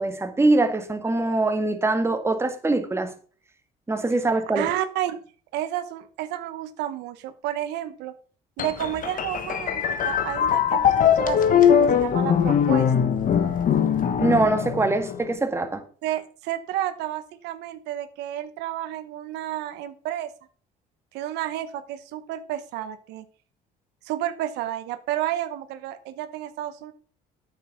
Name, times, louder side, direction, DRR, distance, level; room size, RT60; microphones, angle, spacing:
voice 1, 0.0-3.1 3.9-4.7 14.2-15.8, right 2 dB, 15° right, 1.8 m, -23 dB
voice 2, 4.5-5.2 5.5-8.1 8.6-12.9 16.0-20.3 21.1-23.2 24.1-26.9, right 12 dB, 90° right, 1.0 m, -31 dB
sound 1, 8.6-15.3, left 8 dB, 55° left, 1.4 m, -21 dB
9.1 x 7.2 x 5.9 m
cardioid pair, 110°, 17 cm